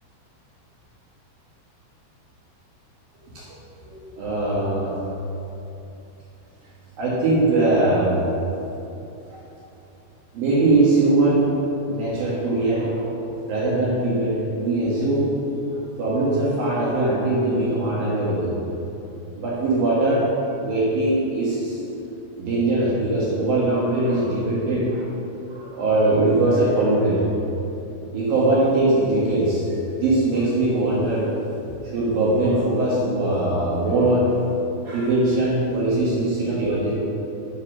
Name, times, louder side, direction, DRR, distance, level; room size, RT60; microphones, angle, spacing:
voice 1, 3.8-4.9 7.0-8.3 9.3-9.4 10.3-11.5 11.9-13.2 13.5-15.5 16.0-18.6 19.4-20.3 20.6-21.8 22.4-25.1 25.5-27.3 28.1-29.7 29.9-31.3 31.8-34.3 34.8-36.9, right 2 dB, 60° right, -6 dB, 2.9 m, -21 dB
10.0 x 8.6 x 6.2 m, 2.9 s
omnidirectional pair, 5.7 m